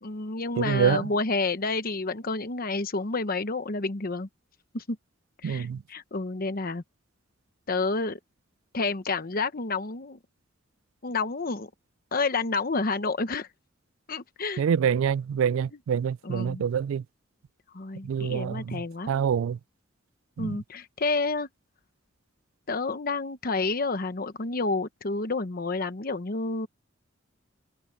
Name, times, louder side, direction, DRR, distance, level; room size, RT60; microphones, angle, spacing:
voice 1, 0.0-4.3 4.7-5.0 5.4-6.8 7.7-8.2 8.7-10.2 11.0-11.7 12.1-13.5 14.1-14.6 16.2-16.6 17.7-19.1 20.4-21.5 22.7-26.7, left 3 dB, 45° left, 1.0 m, -29 dB
voice 2, 0.6-1.1 5.4-5.8 14.6-17.0 18.0-19.6 20.4-20.6, right 7 dB, 90° right, 0.3 m, -26 dB
head